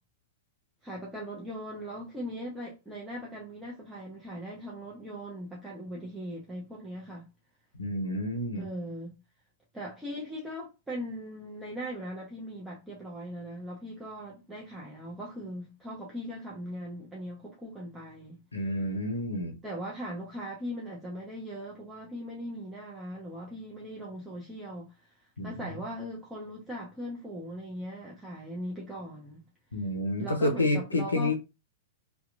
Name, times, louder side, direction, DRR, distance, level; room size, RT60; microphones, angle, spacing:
voice 1, 0.8-7.3 8.5-9.1 9.7-18.4 19.6-29.4 30.2-31.3, equal, 10° right, 0.6 m, -39 dB
voice 2, 7.8-8.7 18.5-19.5 25.4-25.5 29.7-31.3, left 1 dB, 90° left, 0.5 m, -29 dB
2.8 x 2.2 x 2.4 m
figure-of-eight pair, 105°, 0 cm